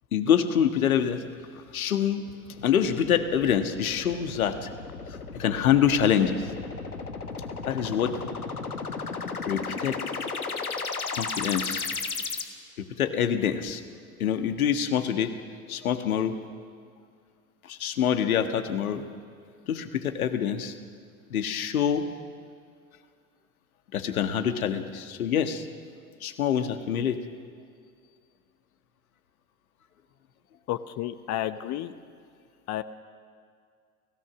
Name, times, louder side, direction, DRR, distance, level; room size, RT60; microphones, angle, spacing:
voice 1, 0.1-1.3 1.7-2.3 2.6-4.6 5.4-6.5 7.6-8.1 9.5-10.0 11.1-11.9 13.0-13.8 14.2-15.3 15.7-16.4 17.7-19.0 19.7-20.7 21.3-22.0 23.9-25.6 26.2-27.2, left 8 dB, 75° left, 8 dB, 1.6 m, -25 dB
sound 1, 2.6-12.4, left 4 dB, 90° left, 1.4 m, -35 dB
voice 2, 30.7-31.9 32.7-32.8, left 13 dB, 40° left, 12 dB, 0.9 m, -31 dB
29.0 x 17.0 x 6.2 m, 2.1 s
figure-of-eight pair, 80°, 43 cm